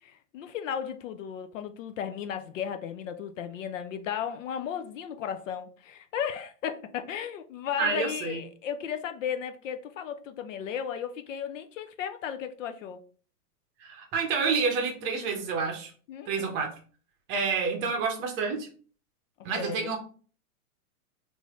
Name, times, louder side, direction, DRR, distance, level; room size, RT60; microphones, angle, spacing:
voice 1, 0.0-13.0 16.1-16.6 19.5-20.0, left 8 dB, 55° left, 0.5 m, -35 dB
voice 2, 7.8-8.4 13.8-15.9 16.3-16.7 17.3-18.7 19.4-20.0, right 5 dB, 25° right, 0.7 m, -28 dB
3.1 x 2.6 x 3.5 m
hypercardioid pair, 135°, 46 cm